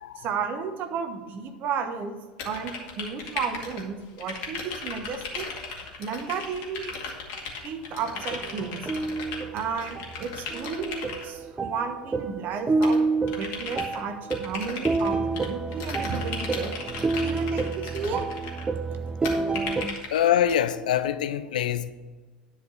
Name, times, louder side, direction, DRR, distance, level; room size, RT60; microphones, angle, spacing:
voice 1, 0.2-2.1 2.4-5.5 6.0-7.0 7.6-8.9 9.5-13.0 13.4-15.2 15.5-16.7 17.2-18.2, right 6 dB, 40° right, 1.2 m, -33 dB
sound 1, 2.4-3.9 4.2-11.2 12.8-14.0 14.3-15.5 15.7-18.6 19.2-20.5, left 4 dB, 50° left, 2.1 m, -36 dB
sound 2, 8.2-19.9, right 3 dB, 20° right, 0.5 m, -29 dB
voice 2, 20.1-21.9, left 10 dB, 65° left, 0.5 m, -24 dB
10.5 x 5.1 x 6.7 m
figure-of-eight pair, 75°, 5 cm